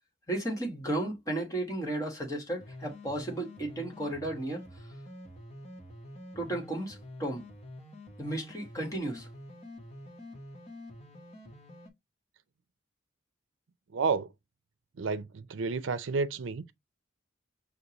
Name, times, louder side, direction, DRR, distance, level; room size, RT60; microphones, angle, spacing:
voice 1, 0.3-4.6 6.3-7.4 8.2-9.3, right 1 dB, 15° left, 1.2 m, -34 dB
sound 1, 2.6-11.9, left 1 dB, 35° left, 1.0 m, -47 dB
voice 2, 13.9-14.3 15.0-16.7, right 4 dB, 80° right, 0.5 m, -31 dB
6.6 x 2.2 x 2.8 m
head